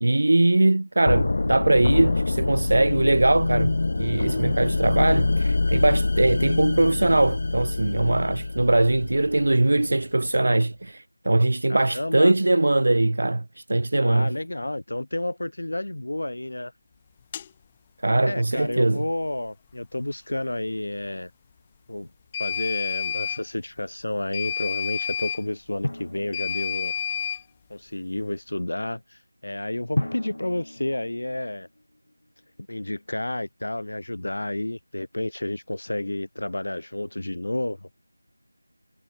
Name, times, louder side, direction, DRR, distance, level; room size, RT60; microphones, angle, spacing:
voice 1, 0.0-14.3 18.0-19.0, right 2 dB, 35° right, 1.1 m, -21 dB
sound 1, 1.1-9.9, left 2 dB, 25° left, 0.6 m, -25 dB
voice 2, 11.7-12.3 14.0-16.7 18.2-21.3 21.9-22.1 22.4-26.9 27.7-31.7 32.7-37.9, left 1 dB, 55° left, 6.5 m, -30 dB
sound 2, 17.3-17.5 22.3-23.4 24.3-25.4 26.3-27.4, left 8 dB, 10° left, 1.6 m, -29 dB
Drum, 25.8-27.3 30.0-32.1, left 1 dB, 80° left, 2.3 m, -33 dB
figure-of-eight pair, 180°, 0 cm